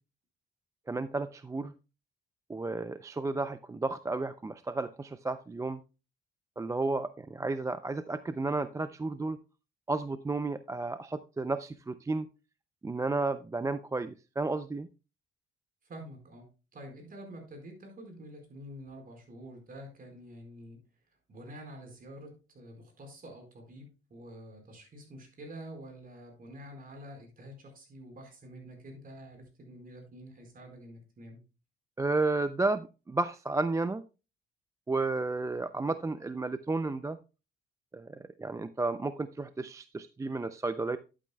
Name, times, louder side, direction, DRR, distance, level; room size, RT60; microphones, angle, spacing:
voice 1, 0.9-1.7 2.5-5.8 6.6-9.4 9.9-12.3 12.8-14.9 32.0-34.0 34.9-37.2 37.9-41.0, right 3 dB, 15° right, 13 dB, 0.4 m, -32 dB
voice 2, 15.8-16.5 16.7-20.8 21.3-31.4, equal, 45° right, 3 dB, 4.5 m, -48 dB
11.5 x 8.8 x 2.2 m, 0.30 s
cardioid pair, 90°, 20 cm